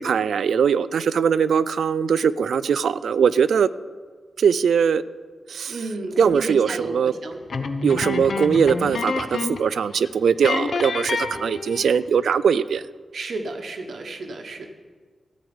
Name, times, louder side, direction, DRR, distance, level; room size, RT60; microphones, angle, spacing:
voice 1, 0.0-3.7 4.4-5.0 5.5-5.8 6.2-7.1 7.8-12.8, right 7 dB, 80° right, 16 dB, 0.3 m, -21 dB
voice 2, 5.7-7.4 8.0-8.1 13.1-14.7, right 2 dB, 55° right, 5 dB, 1.1 m, -32 dB
sound 1, 7.5-9.7 10.0-10.1 10.4-12.1, left 4 dB, 50° left, 0.7 m, -28 dB
14.0 x 4.9 x 8.8 m, 1.5 s
wide cardioid pair, 170°, 0 cm